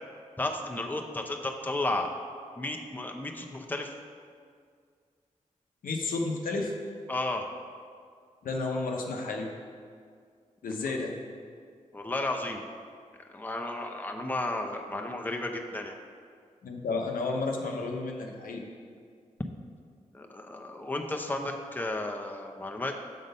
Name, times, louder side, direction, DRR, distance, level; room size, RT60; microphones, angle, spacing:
voice 1, 0.4-2.1 2.6-3.9 7.1-7.4 11.9-12.6 13.3-16.0 20.1-23.0, left 2 dB, 15° left, 2 dB, 0.7 m, -33 dB
voice 2, 5.8-6.7 8.4-9.5 10.6-11.1 16.6-18.6, left 3 dB, 85° left, 1 dB, 0.7 m, -31 dB
7.5 x 3.9 x 5.3 m, 2.1 s
cardioid pair, 45°, 14 cm